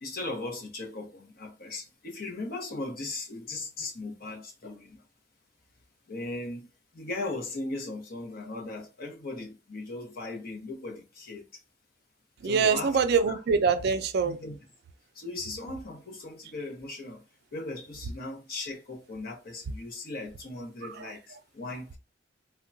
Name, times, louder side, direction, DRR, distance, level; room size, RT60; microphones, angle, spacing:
voice 1, 0.0-5.0 6.1-6.7 6.9-11.4 12.4-13.0 13.3-13.4 14.2-14.6 15.2-17.2 17.5-22.0, left 2 dB, 55° left, 0.8 m, -38 dB
voice 2, 12.4-14.4 20.8-21.1, right 5 dB, 60° right, 0.4 m, -25 dB
3.5 x 2.2 x 2.6 m
head